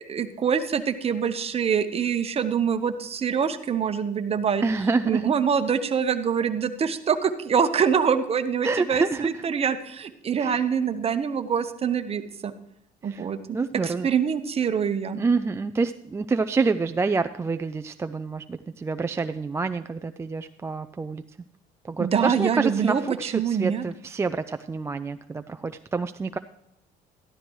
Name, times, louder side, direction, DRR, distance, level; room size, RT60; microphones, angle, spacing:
voice 1, 0.0-4.6 5.0-12.5 13.0-13.6 13.8-15.2 22.0-23.8, right 7 dB, 35° right, 9 dB, 0.9 m, -25 dB
voice 2, 4.6-5.3 8.6-9.4 10.4-10.6 13.0-14.1 15.2-21.2 21.8-26.4, right 4 dB, 15° right, 8 dB, 0.3 m, -27 dB
13.5 x 11.5 x 3.1 m, 0.80 s
cardioid pair, 110°, 17 cm